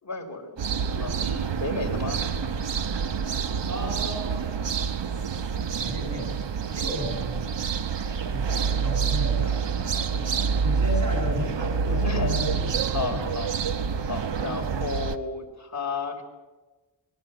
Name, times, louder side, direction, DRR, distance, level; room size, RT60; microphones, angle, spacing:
voice 1, 0.0-2.2 10.1-10.4 12.0-12.3 12.9-13.5 14.1-16.2, left 4 dB, 35° left, 1 dB, 4.3 m, -33 dB
sound 1, 0.6-15.2, right 6 dB, 65° right, 1.3 m, -27 dB
voice 2, 3.7-4.5 5.1-5.5 5.8-7.7 8.3-10.3 10.6-13.3 14.3-14.9, right 1 dB, 40° right, 0 dB, 7.3 m, -34 dB
26.0 x 20.5 x 8.0 m, 1.2 s
wide cardioid pair, 140°, 45 cm